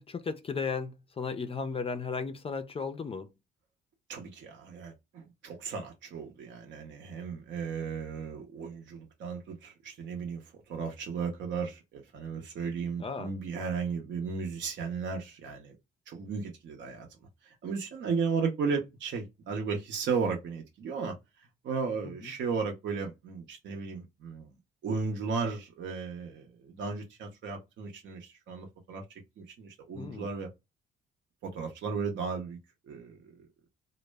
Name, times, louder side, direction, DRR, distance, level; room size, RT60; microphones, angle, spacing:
voice 1, 0.0-3.3 13.0-13.3 22.0-22.3 30.0-30.3, left 5 dB, 30° left, 0.4 m, -35 dB
voice 2, 4.1-15.7 16.1-17.1 17.4-21.2 21.6-24.5 24.8-29.0 29.4-30.5 31.4-32.6 32.9-33.2, right 5 dB, 65° right, 0.7 m, -35 dB
2.0 x 2.0 x 3.2 m
cardioid pair, 90°, 20 cm